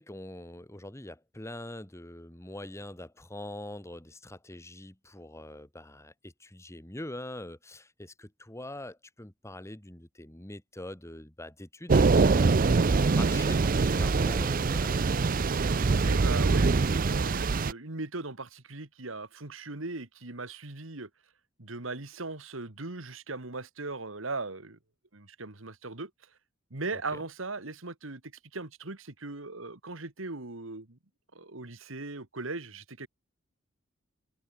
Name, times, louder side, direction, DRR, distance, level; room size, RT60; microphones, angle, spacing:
voice 1, 0.0-15.2 26.9-27.0, left 1 dB, 15° left, 1.7 m, -43 dB
Thunder / Rain, 11.9-17.7, right 4 dB, 45° right, 0.5 m, -24 dB
voice 2, 16.0-21.1 21.6-24.8 25.1-26.1 26.7-28.2 28.5-31.0 31.3-33.1, right 3 dB, 85° right, 2.3 m, -38 dB
head